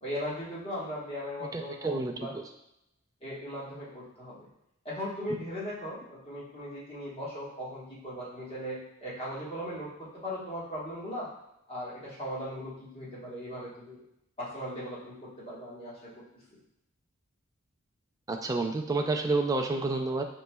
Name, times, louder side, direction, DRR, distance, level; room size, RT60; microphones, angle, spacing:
voice 1, 0.0-2.3 3.2-4.5 4.8-9.9 10.2-11.3 11.7-14.0 14.4-16.1, equal, 30° left, -7 dB, 1.4 m, -38 dB
voice 2, 1.4-2.4 18.3-20.2, right 3 dB, 15° right, 3 dB, 0.3 m, -29 dB
5.3 x 3.1 x 2.2 m, 0.81 s
head